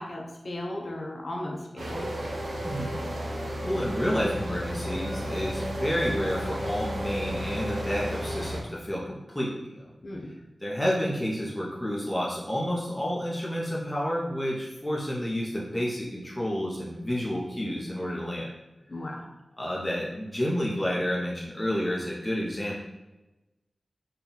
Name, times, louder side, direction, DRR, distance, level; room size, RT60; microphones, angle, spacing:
voice 1, 0.0-2.1 10.0-10.3 18.9-19.3, left 1 dB, 50° left, 0 dB, 0.5 m, -36 dB
sound 1, 1.8-8.6, equal, 70° right, 0.8 m, -33 dB
voice 2, 2.6-3.0 3.4-9.8 10.6-18.5 19.6-22.8, equal, 10° left, -5 dB, 0.7 m, -30 dB
3.9 x 2.3 x 3.9 m, 1.0 s
wide cardioid pair, 85°, 0 cm